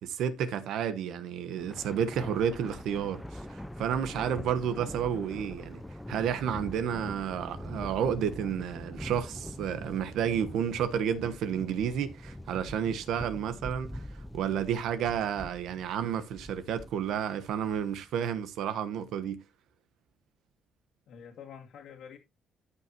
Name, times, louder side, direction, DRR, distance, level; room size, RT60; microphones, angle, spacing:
voice 1, 0.0-5.8 6.1-14.0 14.3-19.4, right 8 dB, 85° right, 1.2 m, -31 dB
Thunder, 1.5-18.1, left 1 dB, 5° left, 0.5 m, -43 dB
voice 2, 21.1-22.2, left 7 dB, 75° left, 1.9 m, -47 dB
14.5 x 5.8 x 2.9 m
cardioid pair, 130°, 0 cm